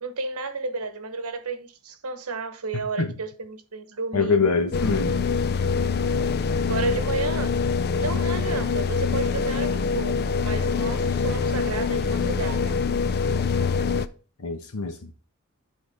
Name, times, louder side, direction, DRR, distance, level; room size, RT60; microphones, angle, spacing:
voice 1, 0.0-4.4 6.6-7.5 8.0-12.7, right 4 dB, 80° right, 1.1 m, -32 dB
voice 2, 4.1-5.3 14.4-15.1, left 4 dB, 80° left, 1.2 m, -24 dB
sound 1, 4.7-14.1, left 5 dB, 45° left, 0.4 m, -24 dB
10.5 x 4.8 x 3.5 m
head